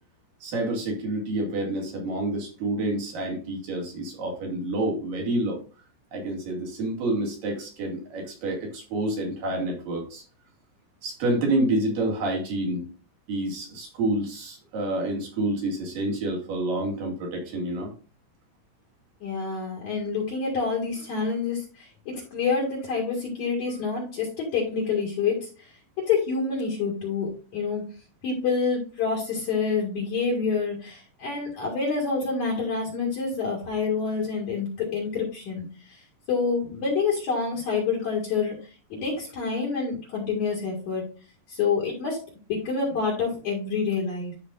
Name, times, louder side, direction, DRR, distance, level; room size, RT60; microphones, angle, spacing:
voice 1, 0.4-5.6 6.1-10.2 11.0-12.8 13.3-17.9, right 1 dB, 55° right, -1 dB, 3.6 m, -28 dB
voice 2, 19.2-27.8 28.2-41.1 41.5-44.3, left 5 dB, 50° left, -3 dB, 2.9 m, -27 dB
12.5 x 4.9 x 2.5 m, 0.36 s
omnidirectional pair, 5.1 m